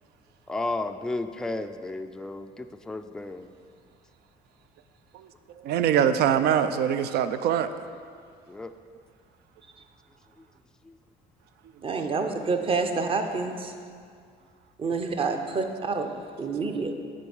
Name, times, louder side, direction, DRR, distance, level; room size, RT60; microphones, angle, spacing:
voice 1, 0.5-3.5 8.5-8.7 10.8-11.0, left 2 dB, 5° left, 7 dB, 0.3 m, -33 dB
voice 2, 5.6-7.7, right 9 dB, 70° right, 11 dB, 0.4 m, -23 dB
voice 3, 11.8-13.7 14.8-16.1 16.4-16.9, right 4 dB, 30° right, 5 dB, 0.7 m, -28 dB
9.2 x 3.7 x 7.1 m, 2.2 s
cardioid pair, 110°, 17 cm